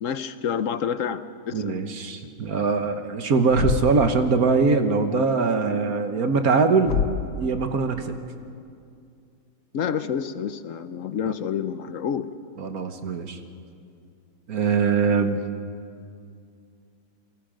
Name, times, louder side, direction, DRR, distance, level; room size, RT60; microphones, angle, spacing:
voice 1, 0.0-1.7 9.7-12.3, left 8 dB, 60° left, 12 dB, 1.0 m, -28 dB
voice 2, 1.5-7.0 7.2-8.1 12.6-13.4 14.5-15.5, right 4 dB, 60° right, 7 dB, 1.7 m, -22 dB
Thump thud, 3.5-4.1 6.8-7.4, left 6 dB, 75° left, 1.6 m, -26 dB
28.5 x 23.0 x 5.2 m, 2.4 s
omnidirectional pair, 1.8 m